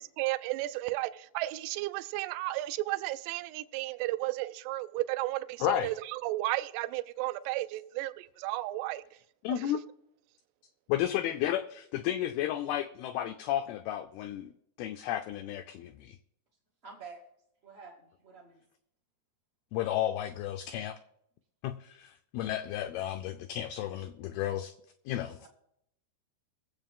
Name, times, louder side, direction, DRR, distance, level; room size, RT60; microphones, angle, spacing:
voice 1, 0.2-9.0 9.6-9.7, right 18 dB, 85° right, 13 dB, 2.6 m, -33 dB
voice 2, 5.6-5.9 9.4-9.8 10.9-14.5 14.8-16.2 19.7-21.0 21.6-24.7 25.1-25.5, left 12 dB, 85° left, 8 dB, 2.2 m, -32 dB
voice 3, 16.8-17.2 17.6-18.6 25.4-25.5, right 5 dB, 50° right, -2 dB, 0.7 m, -49 dB
22.5 x 7.8 x 3.6 m, 0.77 s
omnidirectional pair, 5.0 m